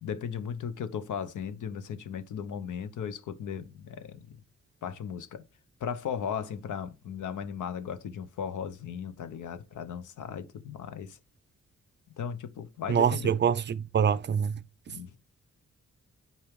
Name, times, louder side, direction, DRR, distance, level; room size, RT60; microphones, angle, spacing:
voice 1, 0.0-4.4 4.8-5.4 5.8-11.2 12.2-13.4 14.9-15.2, left 7 dB, 90° left, 0.9 m, -36 dB
voice 2, 12.9-13.5 13.9-14.5, right 8 dB, 40° right, 0.4 m, -24 dB
8.9 x 4.5 x 3.5 m
cardioid pair, 115°, 30 cm